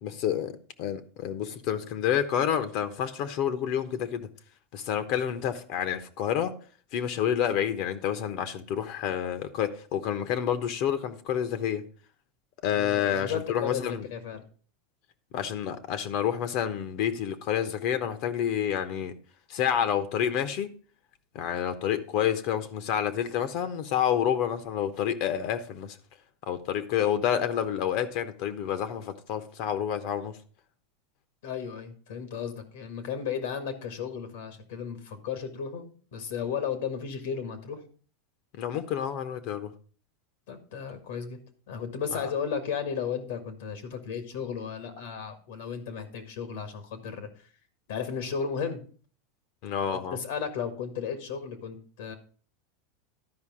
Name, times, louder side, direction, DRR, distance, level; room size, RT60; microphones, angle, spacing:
voice 1, 0.0-4.3 4.7-6.5 6.9-11.8 12.6-14.0 15.3-19.1 19.5-20.7 21.3-26.0 26.5-30.4 38.5-39.7 42.1-42.3 49.6-50.2, left 9 dB, 55° left, 1.0 m, -29 dB
voice 2, 12.7-14.4 31.4-37.8 40.5-41.4 41.7-47.5 47.9-48.8 49.9-52.1, left 7 dB, 80° left, 1.8 m, -34 dB
12.0 x 5.1 x 5.0 m
supercardioid pair, 130°, 0 cm